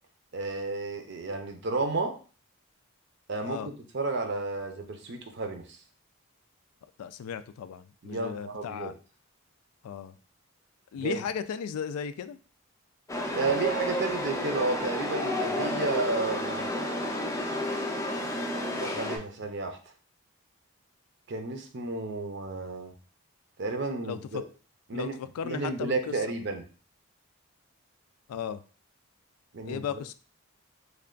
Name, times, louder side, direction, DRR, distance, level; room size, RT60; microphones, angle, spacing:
voice 1, 0.3-2.1 3.3-5.8 8.0-8.9 10.9-11.2 13.3-16.7 17.7-18.0 18.4-19.8 21.3-22.9 23.6-24.4 24.9-25.2 25.4-26.7 29.5-30.0, right 3 dB, 50° right, 5 dB, 0.5 m, -32 dB
voice 2, 7.0-8.9 9.8-10.1 10.9-12.4 24.0-24.4 24.9-26.0 28.3-28.6 29.6-30.1, left 7 dB, 85° left, 13 dB, 0.3 m, -35 dB
Chatter / Subway metro underground, 13.1-19.2, left 1 dB, 15° left, 0.4 m, -31 dB
3.2 x 2.3 x 3.7 m, 0.38 s
head